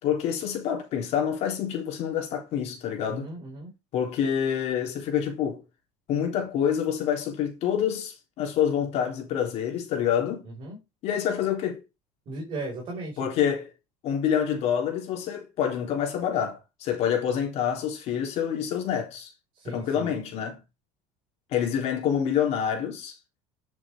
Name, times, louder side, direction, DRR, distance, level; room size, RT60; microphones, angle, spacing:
voice 1, 0.0-3.3 3.9-5.6 6.1-10.4 11.0-11.8 13.2-13.7 14.0-19.3 19.7-20.6 21.5-23.2, left 8 dB, 50° left, 3.6 m, -27 dB
voice 2, 3.1-3.7 10.6-10.8 12.3-13.2 19.5-20.1, right 2 dB, 40° right, 5.4 m, -36 dB
9.8 x 7.2 x 3.7 m
cardioid pair, 155°, 14 cm